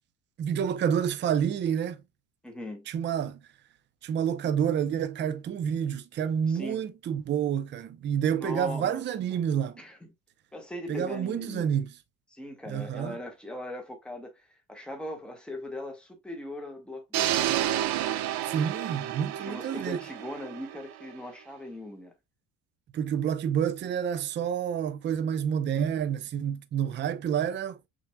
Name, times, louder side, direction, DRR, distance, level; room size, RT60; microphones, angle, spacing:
voice 1, 0.4-2.0 2.9-3.4 4.0-9.8 10.9-11.9 12.7-13.2 18.5-20.0 22.9-27.8, right 8 dB, 30° right, 0.5 m, -28 dB
voice 2, 2.4-2.8 6.5-6.9 8.4-9.4 9.8-10.1 10.5-11.7 12.3-17.5 19.4-22.1, left 1 dB, 5° left, 1.4 m, -40 dB
sound 1, 17.1-21.2, right 12 dB, 80° right, 0.8 m, -30 dB
6.0 x 2.9 x 2.2 m
cardioid pair, 135°, 37 cm